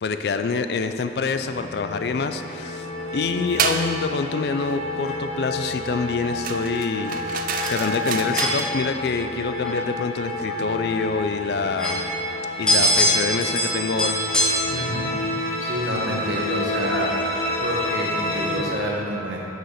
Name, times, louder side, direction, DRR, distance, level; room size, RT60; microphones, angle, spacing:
voice 1, 0.0-2.9 3.1-12.1 12.6-14.2, left 4 dB, 60° left, 9 dB, 0.4 m, -26 dB
sound 1, 1.2-18.6, left 1 dB, 35° left, 1.0 m, -31 dB
sound 2, 2.8-14.6, left 1 dB, 5° left, 0.9 m, -27 dB
sound 3, 3.6-3.9 6.4-8.7, right 7 dB, 50° right, 0.4 m, -28 dB
voice 2, 14.7-15.1 15.6-17.1 17.6-19.4, equal, 80° right, -2 dB, 1.3 m, -28 dB
6.3 x 4.9 x 6.5 m, 2.9 s
head